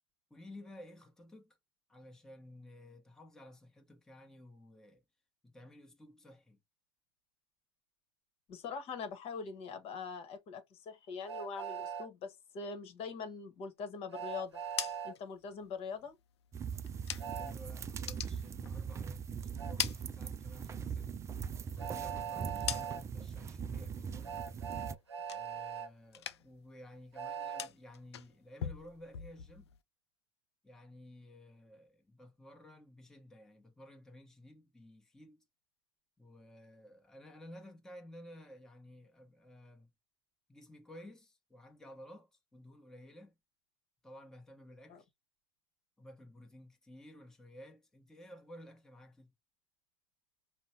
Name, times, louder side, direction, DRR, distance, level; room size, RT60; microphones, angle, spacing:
voice 1, 0.3-1.6 1.9-5.0 5.4-6.6 17.3-21.1 21.7-24.4 25.3-29.7 30.6-35.4 36.2-39.9 40.5-43.3 44.0-45.1 46.0-49.3, left 1 dB, 5° left, 1.1 m, -54 dB
voice 2, 8.5-14.5 15.0-16.2 44.9-45.0, left 5 dB, 45° left, 1.2 m, -43 dB
Train, 11.3-12.1 14.1-15.1 17.2-17.5 19.6-19.7 21.8-23.0 24.2-25.9 27.1-27.7, right 8 dB, 90° right, 0.7 m, -41 dB
sound 1, 14.5-17.6 17.9-19.2 19.5-20.8 21.2-23.3 23.7-24.1 24.5-25.8 26.1-26.7 26.9-29.8, left 10 dB, 80° left, 0.5 m, -44 dB
sound 2, 16.5-25.0, right 7 dB, 20° right, 0.4 m, -41 dB
5.2 x 2.2 x 2.7 m
hypercardioid pair, 85°, 14 cm